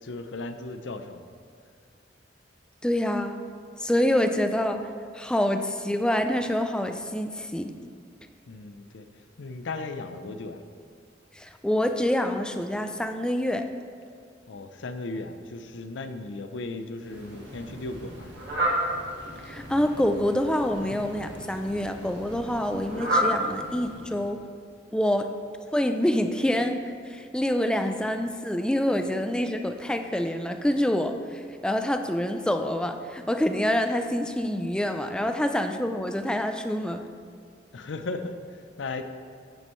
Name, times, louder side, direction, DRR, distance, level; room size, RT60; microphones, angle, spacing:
voice 1, 0.0-1.2 8.5-9.1 9.4-10.6 14.5-18.3 37.7-39.0, left 3 dB, 75° left, 9 dB, 0.5 m, -36 dB
voice 2, 2.8-3.4 3.8-4.9 5.1-7.7 11.4-13.7 19.4-24.4 24.9-25.3 25.7-37.0, left 1 dB, 5° left, 6 dB, 0.3 m, -26 dB
Fowl, 17.0-24.4, right 1 dB, 60° right, 1.8 m, -32 dB
9.6 x 7.8 x 3.1 m, 2.2 s
head